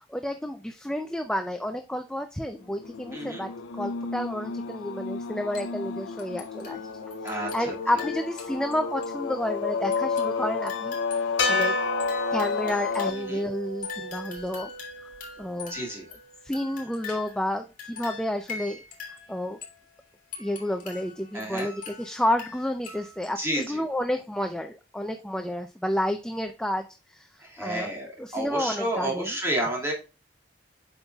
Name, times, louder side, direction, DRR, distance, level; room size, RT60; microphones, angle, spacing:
voice 1, 0.1-6.8 7.2-11.0 11.5-11.8 12.3-14.7 15.4-15.7 16.4-18.8 19.3-19.6 20.4-29.4, left 1 dB, 5° left, 7 dB, 0.3 m, -30 dB
sound 1, 2.8-13.1, left 5 dB, 90° left, 0.5 m, -31 dB
voice 2, 3.1-3.4 7.2-7.5 13.1-13.4 15.7-16.1 21.3-21.7 23.4-23.8 27.4-29.9, right 1 dB, 15° right, -2 dB, 2.2 m, -30 dB
sound 2, 5.5-5.9 6.2-8.7 9.0-9.1 9.9-13.4 13.8-17.5 17.8-19.8 20.3-23.3 23.6-23.7, left 6 dB, 45° left, 2.5 m, -43 dB
sound 3, 11.4-15.7, left 2 dB, 70° left, 1.5 m, -31 dB
7.9 x 5.4 x 2.3 m, 0.31 s
head